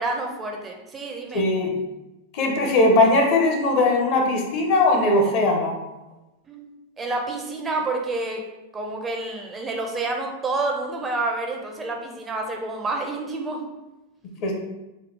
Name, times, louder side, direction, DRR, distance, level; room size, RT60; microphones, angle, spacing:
voice 1, 0.0-1.7 6.5-6.7 7.0-8.4 8.7-13.6, right 2 dB, 20° right, 2 dB, 0.5 m, -29 dB
voice 2, 1.3-1.7 2.3-5.8 14.4-14.5, left 2 dB, 45° left, 1 dB, 0.7 m, -19 dB
3.1 x 2.3 x 3.3 m, 1.0 s
figure-of-eight pair, 90°, 0 cm